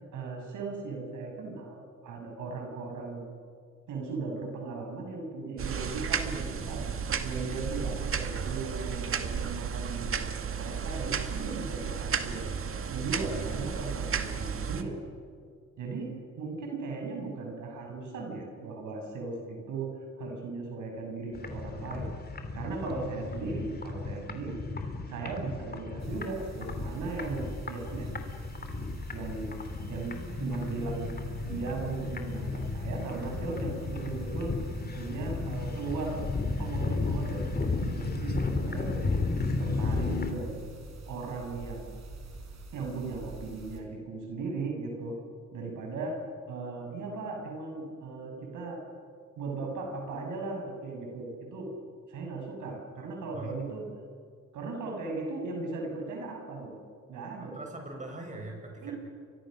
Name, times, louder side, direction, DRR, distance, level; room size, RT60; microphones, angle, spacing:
voice 1, 0.1-3.3 3.9-6.8 7.2-12.5 12.9-15.0 15.8-19.9 20.2-22.1 22.5-24.6 25.1-28.1 29.1-29.5 29.9-31.1 31.5-34.5 34.9-36.2 36.6-39.2 39.6-40.5 41.1-41.9 42.7-45.2 45.5-46.2 46.5-48.8 49.4-51.7 52.1-53.9 54.5-56.8 57.1-57.6 58.8-58.9, right 3 dB, 80° right, 1 dB, 6.7 m, -37 dB
sound 1, 5.6-14.8, right 6 dB, 45° right, 2.0 m, -33 dB
sound 2, 21.3-40.3, left 3 dB, 30° left, 3.1 m, -34 dB
voice 2, 24.7-25.0 53.3-53.6 57.4-58.9, right 2 dB, 25° right, 1 dB, 7.4 m, -42 dB
sound 3, 26.0-43.8, right 3 dB, 60° right, 5.4 m, -46 dB
30.0 x 24.0 x 6.5 m, 2.1 s
cardioid pair, 90°, 30 cm